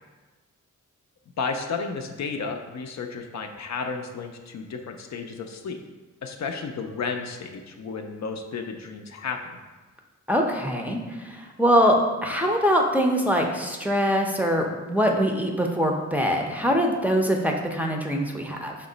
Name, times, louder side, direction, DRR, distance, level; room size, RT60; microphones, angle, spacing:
voice 1, 1.4-5.8 6.2-9.6, left 5 dB, 60° left, 4 dB, 0.5 m, -32 dB
voice 2, 10.3-18.7, equal, 5° right, 0 dB, 0.5 m, -23 dB
5.2 x 2.0 x 3.8 m, 1.3 s
cardioid pair, 55°, 31 cm